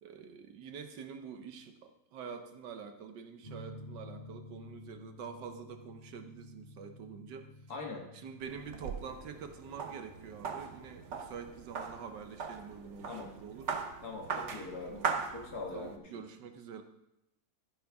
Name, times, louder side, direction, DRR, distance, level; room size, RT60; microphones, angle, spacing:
voice 1, 0.0-7.5 8.1-13.9 14.9-15.1 15.7-16.8, right 6 dB, 70° right, 7 dB, 1.4 m, -46 dB
sound 1, 3.4-11.1, left 1 dB, 20° left, 1.7 m, -52 dB
voice 2, 7.7-8.1 13.0-13.3 14.0-15.0 15.3-16.2, left 3 dB, 55° left, 1 dB, 1.9 m, -42 dB
sound 2, 8.4-16.0, right 5 dB, 50° right, 0.9 m, -40 dB
12.5 x 10.5 x 3.5 m, 0.88 s
omnidirectional pair, 2.1 m